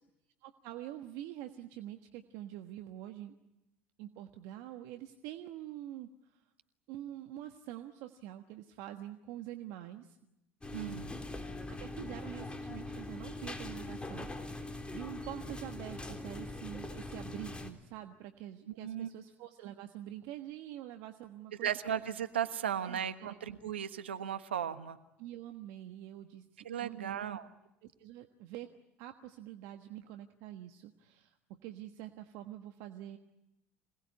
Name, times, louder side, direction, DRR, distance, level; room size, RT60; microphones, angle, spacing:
voice 1, 0.4-3.3 4.0-6.1 6.9-10.2 11.7-21.7 22.8-23.4 25.2-27.2 27.8-31.4 31.6-33.2, right 13 dB, 65° right, 6 dB, 1.4 m, -46 dB
sound 1, 10.6-17.7, left 2 dB, 15° left, 3.6 m, -42 dB
voice 2, 10.7-11.1 18.8-19.1 21.6-25.0 26.6-27.5, right 9 dB, 90° right, 10 dB, 1.3 m, -36 dB
26.5 x 19.0 x 9.7 m, 0.90 s
hypercardioid pair, 70°, 6 cm